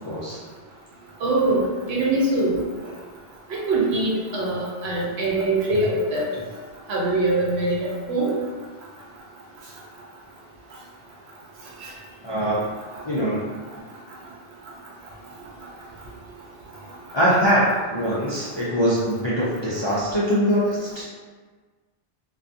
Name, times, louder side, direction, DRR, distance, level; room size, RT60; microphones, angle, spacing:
voice 1, 0.0-0.4 12.2-12.6 13.0-13.5 17.1-17.6 17.9-21.1, equal, 50° left, -10 dB, 0.3 m, -22 dB
voice 2, 1.2-1.6 1.9-2.5 3.7-6.3 6.9-8.3 11.8-11.9, right 2 dB, 90° right, -3 dB, 0.9 m, -23 dB
2.4 x 2.3 x 2.6 m, 1.4 s
omnidirectional pair, 1.1 m